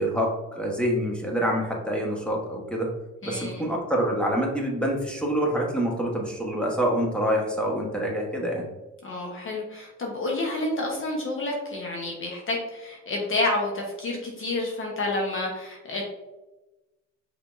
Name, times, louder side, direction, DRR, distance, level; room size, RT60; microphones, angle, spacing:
voice 1, 0.0-2.9 3.2-8.7, equal, 5° left, -2 dB, 1.3 m, -26 dB
voice 2, 3.2-3.7 9.0-16.0, left 2 dB, 45° left, -1 dB, 1.0 m, -29 dB
5.7 x 3.5 x 2.6 m, 1.1 s
cardioid pair, 90°, 30 cm